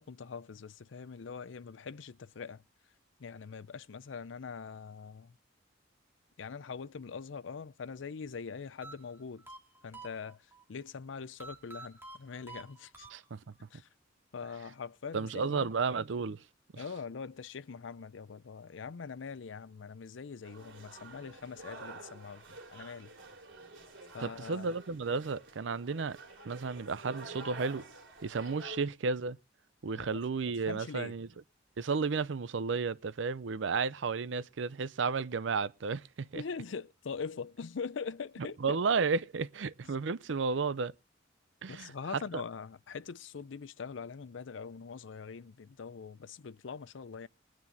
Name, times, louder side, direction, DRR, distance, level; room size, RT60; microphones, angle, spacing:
voice 1, 0.0-2.6 3.2-5.3 6.4-9.5 9.8-13.1 13.7-13.9 14.3-15.7 16.8-23.1 24.1-24.7 29.9-30.2 30.7-31.2 36.3-38.8 41.7-47.3, left 5 dB, 75° left, 0.5 m, -43 dB
sound 1, 8.8-10.6 11.4-13.7, right 3 dB, 15° right, 2.2 m, -50 dB
voice 2, 15.1-16.4 16.7-16.8 24.2-26.2 26.4-27.8 28.2-29.4 29.8-31.3 31.8-36.4 38.6-40.9 41.6-41.9 42.3-42.4, right 4 dB, 70° right, 0.5 m, -33 dB
sound 2, 20.4-28.8, right 2 dB, 90° right, 2.9 m, -49 dB
21.5 x 9.5 x 2.8 m
head